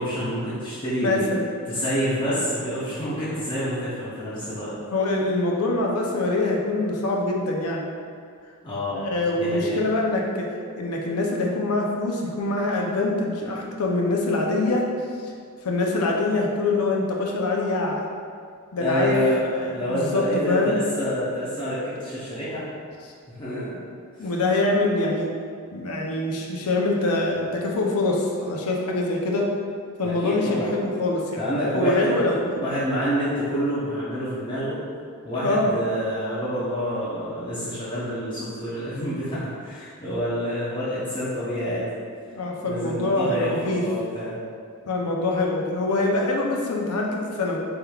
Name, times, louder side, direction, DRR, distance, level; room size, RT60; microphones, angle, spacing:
voice 1, 0.0-1.3 1.7-4.8 8.6-9.1 9.3-9.8 18.8-19.4 19.6-22.6 23.3-23.7 24.2-24.3 30.0-30.8 31.4-32.2 32.6-34.8 35.2-41.9 42.6-44.3, equal, 20° left, -12 dB, 0.8 m, -27 dB
voice 2, 1.0-1.4 4.9-7.9 8.9-10.5 10.8-14.8 15.2-15.3 15.6-18.1 18.7-19.1 19.5-20.8 24.2-25.3 25.7-29.5 30.0-31.5 31.7-32.6 35.4-35.7 42.3-43.8 44.9-47.7, left 2 dB, 85° left, -1 dB, 0.6 m, -24 dB
4.5 x 3.4 x 2.3 m, 2.2 s
head